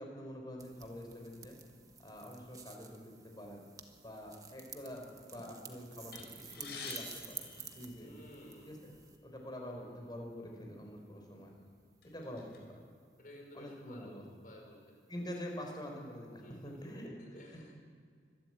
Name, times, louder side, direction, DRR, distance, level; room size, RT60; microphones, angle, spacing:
voice 1, 0.0-1.6 2.0-3.6 4.0-7.4 7.7-8.1 8.6-8.9 9.2-11.5 12.0-12.8 13.5-14.2 15.1-17.2, equal, 25° left, 1 dB, 4.1 m, -46 dB
sound 1, 0.6-9.2, right 5 dB, 20° right, 1.3 m, -51 dB
sound 2, 6.1-8.5 9.3-9.4 9.7-9.9 10.8-10.9 11.4-12.6, left 5 dB, 60° left, 4.1 m, -48 dB
voice 2, 8.0-8.8 13.2-15.0 16.4-17.7, equal, 45° left, 1 dB, 5.5 m, -54 dB
24.5 x 12.0 x 8.9 m, 2.2 s
head